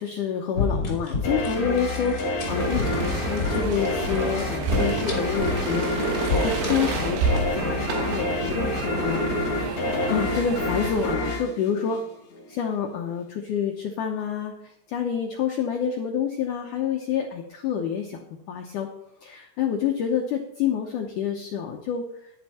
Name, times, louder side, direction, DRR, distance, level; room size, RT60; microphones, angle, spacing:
voice 1, 0.0-9.2 9.5-9.8 10.1-12.0 12.5-14.5 14.9-18.2 18.5-18.9 19.2-22.0, left 7 dB, 80° left, 2 dB, 1.8 m, -28 dB
sound 1, 0.5-8.7, left 4 dB, 25° left, 3.3 m, -32 dB
sound 2, 1.2-12.5, left 2 dB, 45° left, 3.1 m, -28 dB
sound 3, 2.4-11.2, right 5 dB, 75° right, 3.3 m, -30 dB
11.0 x 10.5 x 4.3 m, 0.79 s
omnidirectional pair, 5.0 m